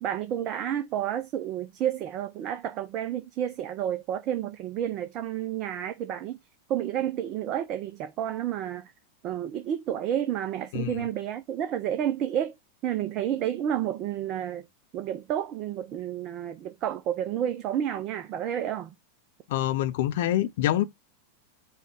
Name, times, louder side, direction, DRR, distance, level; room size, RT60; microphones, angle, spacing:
voice 1, 0.0-6.4 6.7-8.9 9.2-12.5 12.8-14.7 14.9-18.9, right 10 dB, 35° right, 0.5 m, -30 dB
voice 2, 10.7-11.0 19.5-20.8, left 13 dB, 55° left, 0.5 m, -26 dB
4.6 x 2.2 x 4.4 m
figure-of-eight pair, 90°, 0 cm